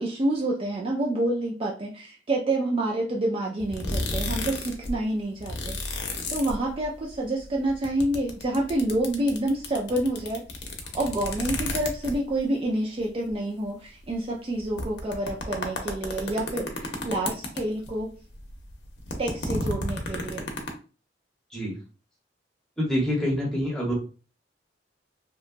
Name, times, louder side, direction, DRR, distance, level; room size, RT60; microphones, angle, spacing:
voice 1, 0.0-5.8 6.3-10.4 10.9-18.1 19.2-20.5, right 1 dB, 30° right, -2 dB, 0.4 m, -28 dB
sound 1, 3.6-4.9 5.2-7.1 7.4-12.4 13.0-13.1 13.3-13.4 14.1-14.2 14.6-18.0 18.3-20.7, left 2 dB, 70° left, 0.6 m, -32 dB
voice 2, 22.8-23.9, equal, 5° left, -5 dB, 1.0 m, -26 dB
2.8 x 2.2 x 2.5 m, 0.35 s
head